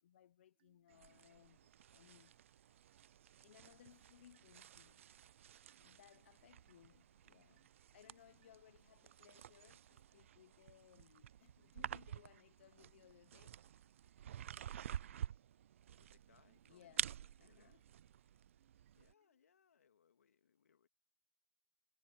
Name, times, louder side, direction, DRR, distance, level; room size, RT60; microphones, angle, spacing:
voice 1, 0.0-2.3 2.8-3.0 3.4-5.0 5.8-13.6 16.7-17.1 17.4-17.8, left 11 dB, 55° left, 0.8 m, -65 dB
sound 1, 0.5-19.8, right 15 dB, 40° right, 1.6 m, -82 dB
sound 2, 0.9-19.1, right 10 dB, 65° right, 0.4 m, -50 dB
voice 2, 6.8-7.4 16.0-17.8 18.9-20.9, left 7 dB, 85° left, 2.8 m, -74 dB
hypercardioid pair, 160°, 8 cm